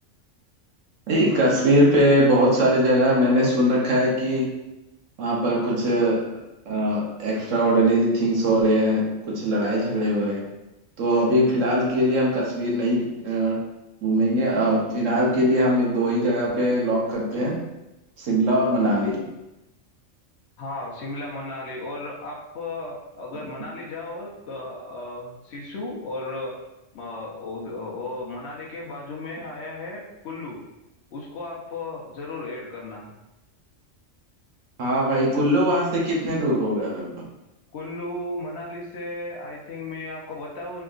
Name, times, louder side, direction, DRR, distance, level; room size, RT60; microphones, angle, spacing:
voice 1, 1.1-4.6 5.2-6.2 6.7-10.5 11.0-13.6 14.0-17.6 18.2-19.3 34.8-37.3, equal, 75° right, -3 dB, 1.2 m, -21 dB
voice 2, 20.6-26.6 26.9-30.6 31.1-33.1 37.7-40.8, left 2 dB, 60° left, -2 dB, 1.0 m, -35 dB
3.8 x 3.5 x 2.4 m, 0.95 s
omnidirectional pair, 1.3 m